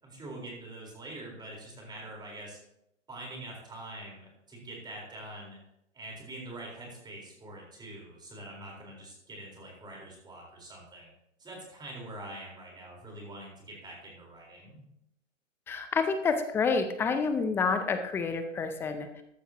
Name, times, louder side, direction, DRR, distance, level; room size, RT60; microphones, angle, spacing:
voice 1, 0.0-2.6 3.1-5.6 5.9-11.1 11.4-14.8, right 1 dB, 10° right, -1 dB, 4.2 m, -44 dB
voice 2, 15.7-19.2, left 5 dB, 5° left, 8 dB, 0.4 m, -28 dB
14.5 x 11.5 x 2.9 m, 0.80 s
hypercardioid pair, 130°, 38 cm